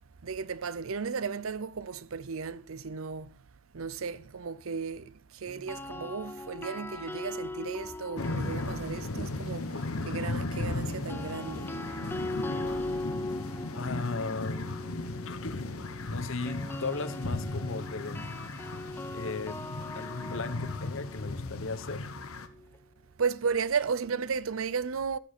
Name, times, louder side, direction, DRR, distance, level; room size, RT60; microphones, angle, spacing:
voice 1, 0.2-3.4 3.7-11.7 23.2-25.2, right 5 dB, 75° right, 0.6 m, -34 dB
sound 1, 5.5-9.6 10.9-22.8, left 2 dB, 10° left, 0.5 m, -40 dB
sound 2, 7.6-10.3 10.6-14.3 14.6-15.0, right 1 dB, 40° left, 2.0 m, -54 dB
sound 3, 8.2-22.5, left 2 dB, 90° left, 1.1 m, -36 dB
voice 2, 13.7-14.7 15.3-15.8 16.1-18.2 19.1-19.6 19.9-22.1, left 3 dB, 65° left, 0.9 m, -36 dB
14.5 x 7.2 x 4.3 m
head